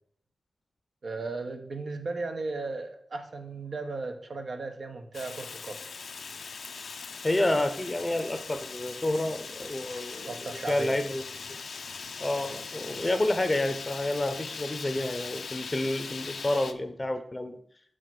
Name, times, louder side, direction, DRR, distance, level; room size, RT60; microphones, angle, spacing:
voice 1, 1.0-5.8 10.2-11.0, right 3 dB, 60° right, 6 dB, 1.0 m, -36 dB
Fire, 5.1-16.7, left 5 dB, 70° left, 0.5 m, -40 dB
voice 2, 7.2-11.2 12.2-17.6, left 1 dB, 20° left, 8 dB, 0.7 m, -29 dB
6.2 x 5.0 x 5.9 m, 0.63 s
wide cardioid pair, 100°, 0 cm